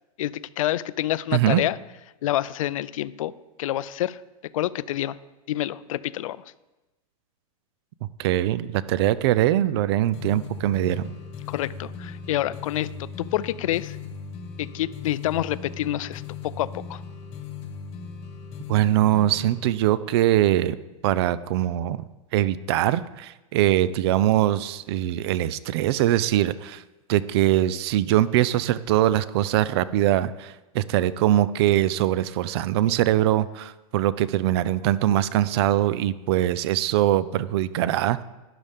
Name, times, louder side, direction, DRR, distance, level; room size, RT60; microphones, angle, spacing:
voice 1, 0.2-1.8 2.2-3.3 3.6-4.2 4.5-5.2 5.5-6.4 11.5-14.0 14.6-17.0, left 13 dB, 65° left, 18 dB, 0.5 m, -28 dB
voice 2, 8.2-11.1 18.7-20.8 21.0-22.0 22.3-26.8 27.1-38.2, right 13 dB, 45° right, 17 dB, 0.5 m, -22 dB
sound 1, 10.1-19.7, left 5 dB, 30° left, 1.2 m, -38 dB
12.0 x 11.5 x 3.6 m, 1.0 s
supercardioid pair, 160°, 19 cm